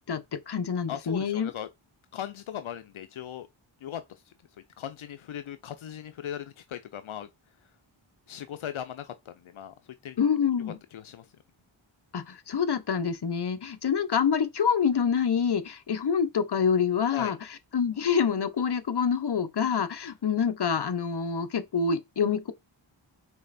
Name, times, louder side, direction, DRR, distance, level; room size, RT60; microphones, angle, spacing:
voice 1, 0.0-1.5 10.2-10.8 12.1-17.4 17.7-22.5, left 6 dB, 55° left, 0.9 m, -26 dB
voice 2, 0.9-1.7 2.1-3.5 3.8-4.3 4.8-7.3 8.3-9.7 10.0-10.2 10.6-11.3 17.1-17.3, left 10 dB, 80° left, 0.6 m, -38 dB
5.6 x 4.2 x 4.1 m
wide cardioid pair, 65°, 48 cm